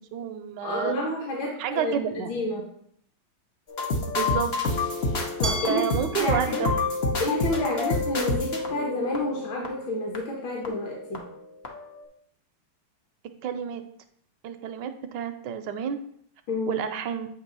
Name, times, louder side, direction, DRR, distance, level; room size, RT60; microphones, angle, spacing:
voice 1, 0.0-0.9 1.6-2.4 4.1-4.5 5.7-6.7 13.4-13.8 14.4-16.0 16.7-17.3, right 9 dB, 80° right, 8 dB, 1.0 m, -30 dB
voice 2, 0.6-2.6 5.4-5.8 6.2-6.7 7.2-11.2 16.5-16.8, left 1 dB, 65° left, -2 dB, 1.7 m, -30 dB
sound 1, 3.7-11.4 11.6-12.0, left 3 dB, 90° left, 0.5 m, -29 dB
Glass, 5.4-8.3, right 1 dB, 20° right, 0.4 m, -37 dB
8.0 x 3.0 x 5.3 m, 0.67 s
omnidirectional pair, 2.4 m